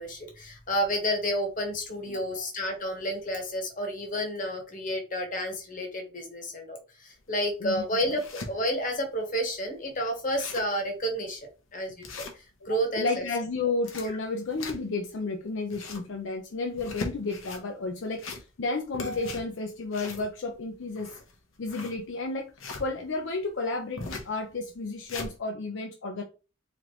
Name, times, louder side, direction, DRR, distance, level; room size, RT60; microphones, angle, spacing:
voice 1, 0.0-12.0 12.6-13.1, equal, 40° left, 3 dB, 1.1 m, -30 dB
voice 2, 2.1-2.5 7.6-8.1 12.6-21.1 21.6-22.5 22.8-26.2, left 3 dB, 65° left, 2 dB, 0.5 m, -32 dB
sound 1, 7.2-7.3 7.8-8.5 9.1-9.2 9.4-9.5 9.9-10.0 10.2-10.8 11.2-11.4 12.0-12.8 13.6-15.1 15.5-16.1 16.7-17.6 18.1-18.7 18.9-22.9 24.0-24.3 24.8-25.3, left 3 dB, 85° left, 0.9 m, -39 dB
3.8 x 3.1 x 3.0 m, 0.33 s
head